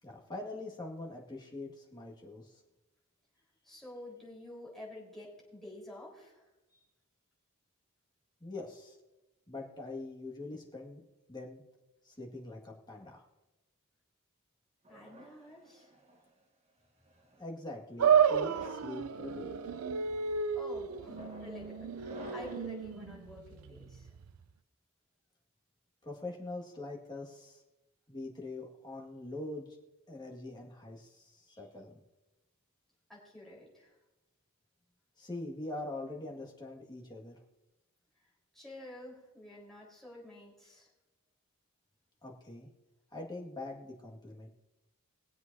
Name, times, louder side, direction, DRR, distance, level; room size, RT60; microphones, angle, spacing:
voice 1, 0.0-2.6 8.4-9.0 9.5-11.0 11.3-11.6 12.0-13.2 17.4-19.5 26.0-27.6 28.1-29.7 30.1-32.0 35.2-37.4 42.2-42.7 43.1-44.5, left 2 dB, 20° left, -1 dB, 1.9 m, -43 dB
voice 2, 3.6-6.5 14.9-15.9 20.5-24.1 33.1-34.0 38.5-40.9, left 1 dB, ahead, -5 dB, 4.1 m, -49 dB
sound 1, 14.9-16.3 17.1-17.4 18.3-18.9 19.6-19.9 20.9-22.8, right 1 dB, 30° right, 1.3 m, -50 dB
sound 2, 18.0-24.4, right 7 dB, 75° right, 0.5 m, -31 dB
22.0 x 7.8 x 2.7 m, 1.0 s
head